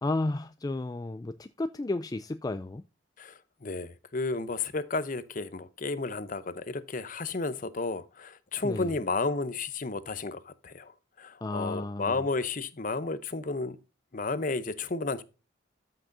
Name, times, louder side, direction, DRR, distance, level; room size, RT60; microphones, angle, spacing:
voice 1, 0.0-2.8 8.6-8.9 11.4-12.1, left 2 dB, 20° left, 0.3 m, -32 dB
voice 2, 3.2-13.8 14.1-15.2, left 3 dB, 40° left, 0.7 m, -32 dB
14.0 x 6.0 x 2.6 m
head